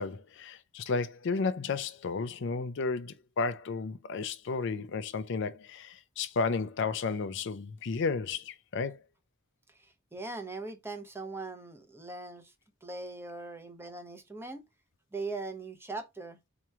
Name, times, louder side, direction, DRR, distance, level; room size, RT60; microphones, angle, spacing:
voice 1, 0.0-9.0, left 4 dB, 60° left, 0.5 m, -33 dB
voice 2, 9.7-12.5 12.8-14.6 15.1-16.4, right 3 dB, 10° right, 0.8 m, -40 dB
4.4 x 3.0 x 3.5 m
head